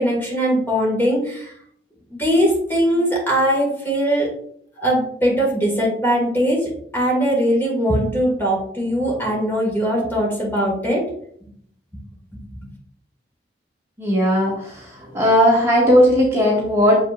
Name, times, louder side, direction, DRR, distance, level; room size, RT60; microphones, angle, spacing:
voice 1, 0.0-1.5 2.2-4.3 4.8-11.0, equal, 15° left, -3 dB, 2.1 m, -20 dB
voice 2, 14.0-14.8 15.1-17.0, equal, 15° right, -5 dB, 1.8 m, -16 dB
7.3 x 5.4 x 2.6 m, 0.64 s
head